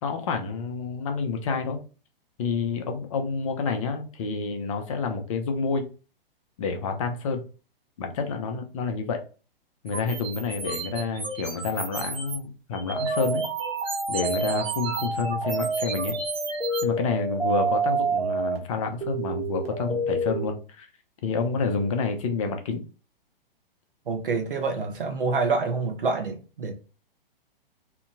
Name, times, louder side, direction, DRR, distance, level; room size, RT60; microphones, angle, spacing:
voice 1, 0.0-1.8 2.4-5.9 6.6-7.4 8.0-9.2 9.8-13.4 14.1-16.2 16.8-20.9 21.2-22.8, left 4 dB, 35° left, 0.5 m, -28 dB
sound 1, 9.9-12.4 12.7-16.8, right 4 dB, 15° right, 0.7 m, -35 dB
Melody played on a synthesizer, 12.9-18.6 19.0-20.5, right 3 dB, 90° right, 1.0 m, -28 dB
voice 2, 24.1-26.8, right 4 dB, 65° right, 0.9 m, -27 dB
2.9 x 2.6 x 2.4 m
figure-of-eight pair, 115°, 29 cm